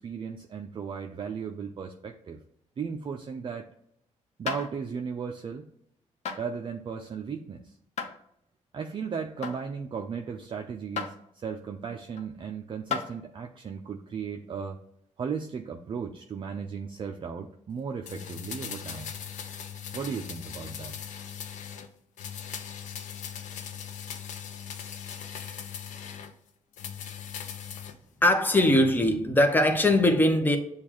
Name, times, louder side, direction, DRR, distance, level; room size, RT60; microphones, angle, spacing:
voice 1, 0.0-2.4 2.8-3.7 4.4-5.7 6.4-7.8 8.7-14.8 15.2-19.2 19.9-21.0, right 6 dB, 40° right, 0.4 m, -36 dB
sound 1, 4.5-4.7 6.2-6.4 8.0-8.1 9.4-9.7 11.0-11.1 12.2-12.3 12.9-13.1 14.5-14.6, left 6 dB, 65° left, 0.9 m, -32 dB
sound 2, 18.1-21.9 22.2-26.3 26.7-28.0 28.3-28.4, left 8 dB, 80° left, 0.5 m, -39 dB
voice 2, 28.2-30.6, left 1 dB, 15° left, 0.8 m, -21 dB
6.9 x 2.4 x 3.0 m
cardioid pair, 90°, 12 cm